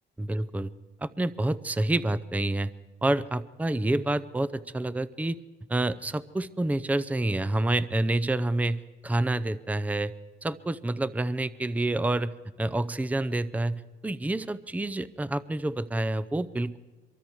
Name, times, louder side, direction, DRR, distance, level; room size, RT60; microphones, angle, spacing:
voice 1, 0.2-0.7 1.0-2.7 3.0-5.4 5.7-10.1 10.4-16.8, right 2 dB, 5° right, 15 dB, 0.6 m, -28 dB
24.0 x 23.5 x 4.6 m, 1.2 s
cardioid pair, 90°, 20 cm